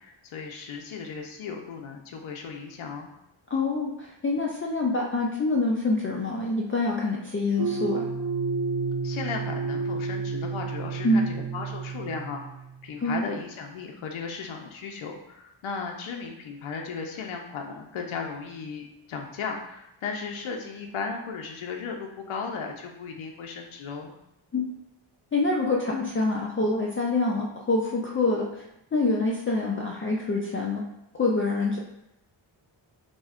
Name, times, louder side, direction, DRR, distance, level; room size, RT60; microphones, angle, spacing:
voice 1, 0.0-3.1 9.0-12.4 12.8-24.1, left 5 dB, 80° left, 2 dB, 0.6 m, -36 dB
voice 2, 3.5-8.1 11.0-11.2 13.0-13.2 24.5-24.6 25.3-28.6 28.9-30.8 31.1-31.8, left 2 dB, 30° left, -3 dB, 0.3 m, -26 dB
sound 1, 7.6-12.8, right 5 dB, 85° right, 1.1 m, -31 dB
6.0 x 2.1 x 2.4 m, 0.84 s
wide cardioid pair, 130°, 48 cm